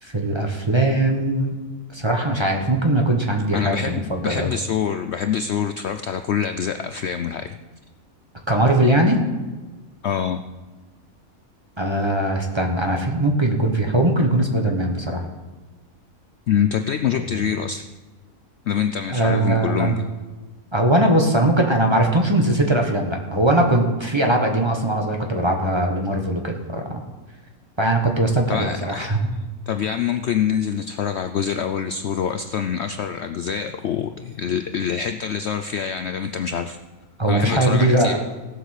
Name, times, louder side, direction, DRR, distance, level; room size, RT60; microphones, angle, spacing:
voice 1, 0.0-1.5 1.9-4.5 8.5-9.2 11.8-15.2 17.3-17.4 19.1-20.0 20.7-27.0 27.8-29.3 37.2-38.2, right 1 dB, 20° right, 2 dB, 1.3 m, -20 dB
voice 2, 3.5-7.5 10.0-10.4 16.5-17.8 18.7-20.1 28.5-29.1 29.7-36.8 37.3-38.2, left 8 dB, 60° left, 8 dB, 0.7 m, -25 dB
16.5 x 7.9 x 6.6 m, 1.3 s
omnidirectional pair, 1.6 m